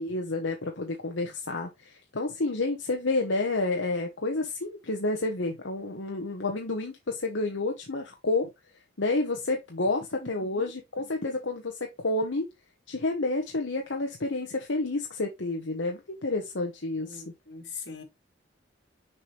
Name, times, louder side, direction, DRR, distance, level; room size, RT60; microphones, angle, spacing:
voice 1, 0.0-8.5 9.0-12.5 12.9-17.2, left 2 dB, 85° left, 1.2 m, -30 dB
voice 2, 10.2-10.7 17.0-18.0, left 4 dB, 65° left, 3.0 m, -42 dB
6.5 x 4.8 x 3.2 m
head